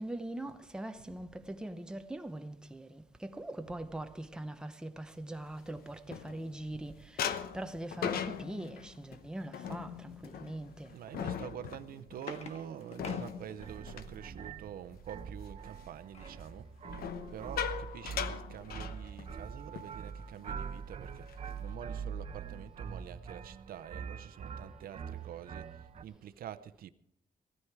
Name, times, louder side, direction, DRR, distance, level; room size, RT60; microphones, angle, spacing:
voice 1, 0.0-11.0, right 1 dB, 5° right, 0.7 m, -42 dB
sound 1, 5.3-6.7 7.2-15.0 15.4-15.7 16.9-19.5 19.8-20.0 20.3-20.6 21.0-21.7, left 8 dB, 80° left, 0.9 m, -40 dB
voice 2, 10.9-26.9, right 10 dB, 75° right, 0.6 m, -47 dB
sound 2, 11.7-14.1 15.6-16.5 17.0-17.1 17.3-17.6, left 4 dB, 45° left, 1.5 m, -49 dB
sound 3, 13.6-26.0, right 6 dB, 40° right, 0.7 m, -44 dB
17.0 x 13.0 x 4.7 m
wide cardioid pair, 165°, 15 cm